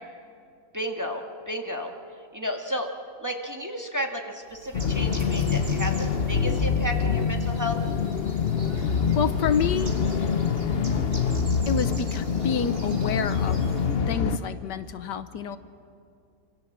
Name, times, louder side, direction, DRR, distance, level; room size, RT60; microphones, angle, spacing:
voice 1, 0.7-1.9 2.3-2.9 3.2-5.9 6.3-7.8, equal, 10° right, 2 dB, 1.7 m, -32 dB
Bird, 4.5-14.1, right 2 dB, 55° right, 3.1 m, -42 dB
sound 1, 4.7-14.4, left 6 dB, 45° left, 0.8 m, -25 dB
voice 2, 8.7-9.9 11.7-13.6 14.1-15.6, left 7 dB, 75° left, 11 dB, 1.5 m, -29 dB
26.5 x 26.0 x 7.4 m, 2.4 s
omnidirectional pair, 1.9 m